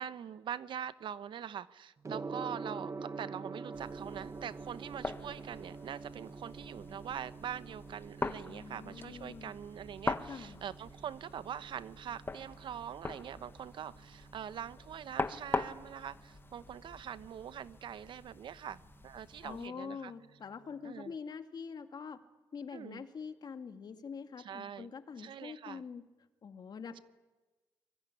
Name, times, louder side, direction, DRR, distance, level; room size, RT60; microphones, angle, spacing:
voice 1, 0.0-20.1 20.8-21.1 22.7-23.0 24.4-24.9 25.2-25.8, right 9 dB, 65° right, 15 dB, 1.0 m, -43 dB
Gong, 2.0-21.1, right 4 dB, 35° right, 1.5 m, -48 dB
sound 1, 3.7-19.7, left 3 dB, 25° left, 1.5 m, -43 dB
voice 2, 8.5-9.5 10.3-10.6 19.4-22.2 22.5-26.0 26.4-27.0, left 6 dB, 50° left, 7 dB, 2.3 m, -45 dB
24.5 x 21.5 x 10.0 m, 1.2 s
cardioid pair, 80°, 9 cm